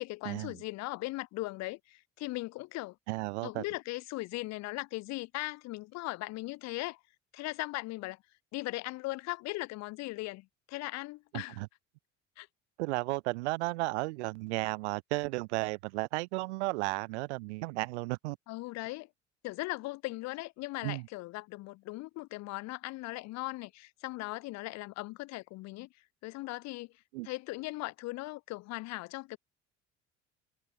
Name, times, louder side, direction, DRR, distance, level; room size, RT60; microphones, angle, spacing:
voice 1, 0.0-3.0 3.4-7.0 7.3-8.2 8.5-11.6 12.4-12.5 18.5-19.1 19.4-25.9 26.2-26.9 27.2-29.4, left 21 dB, 45° left, 0.7 m, -38 dB
voice 2, 3.1-3.6 11.3-11.7 12.8-18.4 20.8-21.1 27.1-27.3, right 24 dB, 65° right, 0.6 m, -34 dB
figure-of-eight pair, 55°, 37 cm